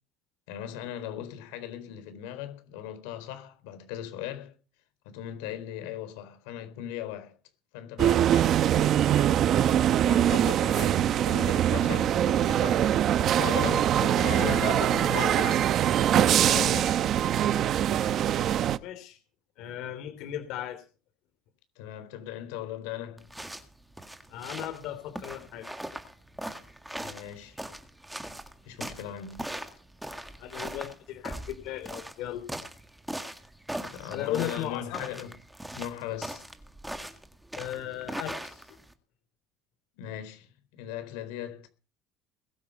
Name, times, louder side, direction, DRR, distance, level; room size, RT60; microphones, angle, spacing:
voice 1, 0.5-4.5 5.0-7.4 7.7-9.5 10.0-12.9 13.2-14.6 16.1-16.9 21.8-23.3 27.0-27.6 28.6-29.4 33.8-35.3 35.7-36.4 40.0-41.7, left 11 dB, 90° left, 4.1 m, -39 dB
sound 1, 8.0-18.8, right 10 dB, 40° right, 0.8 m, -23 dB
voice 2, 14.2-15.6 18.8-19.2 19.6-20.8 24.3-25.6 30.4-32.4 34.1-35.0 37.6-38.8, left 12 dB, 60° left, 3.0 m, -36 dB
sound 2, 23.2-38.9, right 1 dB, 5° right, 1.8 m, -40 dB
21.0 x 8.9 x 5.5 m
cardioid pair, 150°, 0 cm